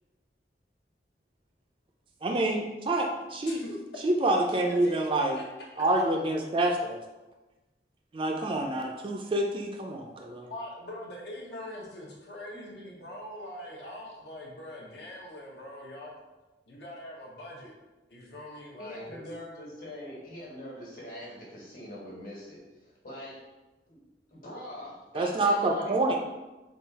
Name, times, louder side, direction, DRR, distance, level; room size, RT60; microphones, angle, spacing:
voice 1, 2.2-3.6 4.0-5.4 5.8-7.0 8.1-10.5 12.6-12.7 25.1-26.2, right 2 dB, 30° right, 2 dB, 0.4 m, -27 dB
voice 2, 3.5-3.8 4.6-5.4 10.5-16.1 16.7-17.7 18.1-19.3, left 1 dB, 75° left, -3 dB, 0.9 m, -42 dB
voice 3, 18.8-23.4 23.9-24.0 24.3-26.1, left 1 dB, 50° left, -5 dB, 1.4 m, -43 dB
3.8 x 2.4 x 4.0 m, 1.1 s
head